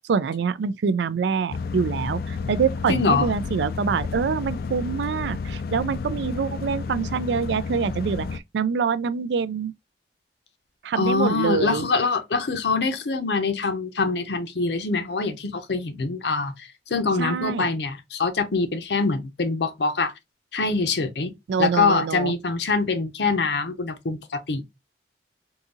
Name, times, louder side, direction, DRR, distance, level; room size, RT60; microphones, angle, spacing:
voice 1, 0.1-9.7 10.8-11.9 17.2-17.7 21.5-22.3, right 6 dB, 80° right, 0.3 m, -25 dB
sound 1, 1.5-8.4, left 4 dB, 55° left, 0.3 m, -31 dB
voice 2, 2.9-3.3 11.0-20.1 20.5-21.3 21.6-24.7, left 4 dB, 70° left, 0.7 m, -24 dB
3.7 x 2.7 x 2.5 m
head